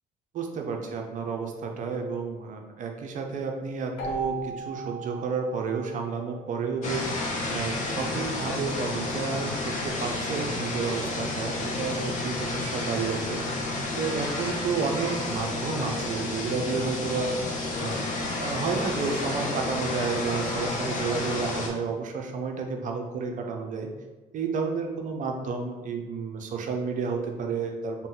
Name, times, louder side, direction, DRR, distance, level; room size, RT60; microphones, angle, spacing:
voice 1, 0.3-13.4 14.0-17.3 17.8-18.0 18.4-23.9 24.3-28.1, right 5 dB, 50° right, 3 dB, 0.5 m, -31 dB
Keyboard (musical), 4.0-6.6, right 4 dB, 80° left, 0.9 m, -37 dB
sound 1, 6.8-21.7, left 2 dB, 45° left, 0.7 m, -31 dB
2.6 x 2.1 x 3.8 m, 1.2 s
cardioid pair, 110°, 17 cm